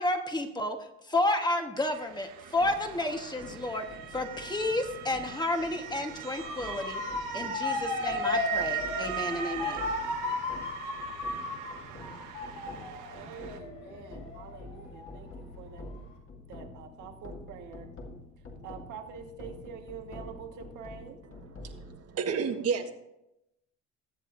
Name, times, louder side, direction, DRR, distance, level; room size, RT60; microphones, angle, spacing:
voice 1, 0.0-3.9 4.1-7.0 7.3-9.9, left 1 dB, 15° left, 5 dB, 1.3 m, -31 dB
Motor vehicle (road) / Siren, 1.8-13.6, right 10 dB, 90° right, 1.3 m, -40 dB
sound 1, 2.5-22.0, left 2 dB, 40° left, 2.1 m, -48 dB
Motor vehicle (road) / Siren 2, 6.4-15.3 15.7-16.2, left 3 dB, 85° left, 3.8 m, -35 dB
voice 2, 13.1-15.9 16.5-17.9 18.6-21.2, right 7 dB, 70° right, 4 dB, 1.6 m, -46 dB
voice 3, 21.6-22.9, right 6 dB, 50° right, 6 dB, 1.5 m, -31 dB
21.0 x 7.7 x 2.6 m, 0.87 s
cardioid pair, 105°, 31 cm